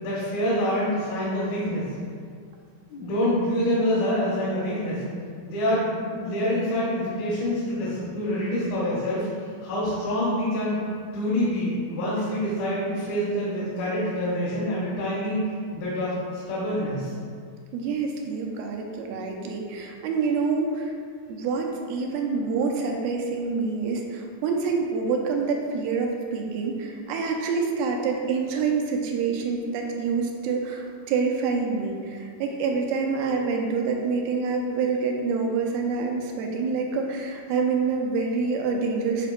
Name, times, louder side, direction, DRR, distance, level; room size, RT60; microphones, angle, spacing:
voice 1, 0.0-1.9 2.9-5.0 5.4-9.3 9.6-10.8 11.1-15.4 15.7-16.1 16.5-17.1, equal, 80° left, -9 dB, 3.1 m, -26 dB
voice 2, 17.7-20.9 21.3-39.3, right 4 dB, 90° right, 1 dB, 2.5 m, -27 dB
10.0 x 4.4 x 2.2 m, 2.1 s
omnidirectional pair, 4.1 m